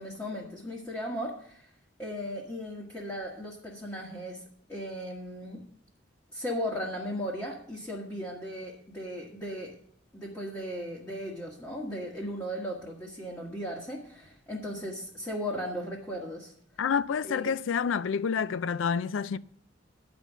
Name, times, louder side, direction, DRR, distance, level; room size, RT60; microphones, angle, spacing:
voice 1, 0.0-1.7 2.0-4.4 4.7-5.6 6.3-9.7 10.1-16.5 17.2-17.5, equal, 15° left, 1.5 m, -36 dB
voice 2, 16.8-19.4, left 6 dB, 90° left, 0.4 m, -28 dB
10.0 x 5.3 x 7.3 m
head